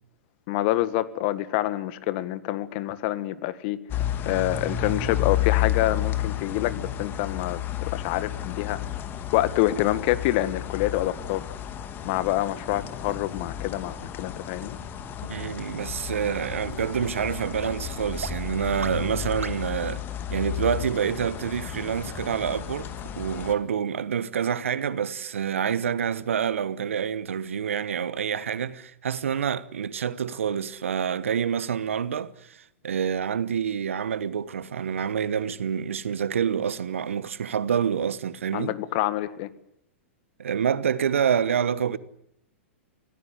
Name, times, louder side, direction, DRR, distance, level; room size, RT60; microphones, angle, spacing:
voice 1, 0.5-3.8 4.2-7.6 7.9-8.8 9.3-11.4 12.0-14.8 38.5-39.5, left 15 dB, 45° left, 1.7 m, -26 dB
sound 1, 3.9-23.5, left 10 dB, 30° left, 2.2 m, -32 dB
sound 2, 12.8-12.9 13.4-13.5 14.0-14.1 14.6-14.7 15.2-15.3 15.8-15.9 16.4-16.5 17.0-17.1 17.6-17.7 18.2-18.3 18.8-18.9 19.4-19.5, right 4 dB, 85° right, 1.9 m, -36 dB
voice 2, 15.3-20.0 20.3-38.7 40.4-42.0, right 8 dB, 70° right, 1.2 m, -27 dB
26.0 x 17.0 x 9.7 m
figure-of-eight pair, 105°, 7 cm